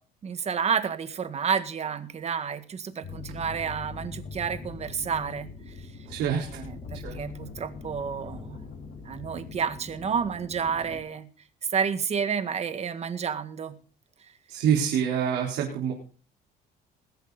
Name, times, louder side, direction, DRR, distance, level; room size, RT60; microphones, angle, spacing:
voice 1, 0.2-5.9 6.5-8.6 9.1-11.3 11.7-13.8, right 6 dB, 40° right, 10 dB, 1.8 m, -30 dB
sound 1, 3.0-11.0, left 4 dB, 50° left, 6.0 m, -42 dB
voice 2, 6.1-6.6 7.0-7.2 14.5-15.9, right 8 dB, 85° right, -2 dB, 4.1 m, -26 dB
21.0 x 8.1 x 4.1 m, 0.38 s
cardioid pair, 110°, 17 cm